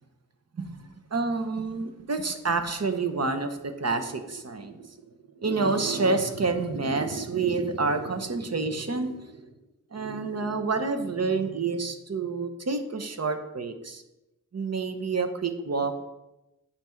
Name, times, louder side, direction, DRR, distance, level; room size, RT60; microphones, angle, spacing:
voice 1, 1.1-4.9 5.4-9.3 9.9-14.0 14.5-16.1, right 4 dB, 50° right, 7 dB, 0.9 m, -28 dB
8.4 x 5.9 x 4.4 m, 0.95 s
wide cardioid pair, 95°, 32 cm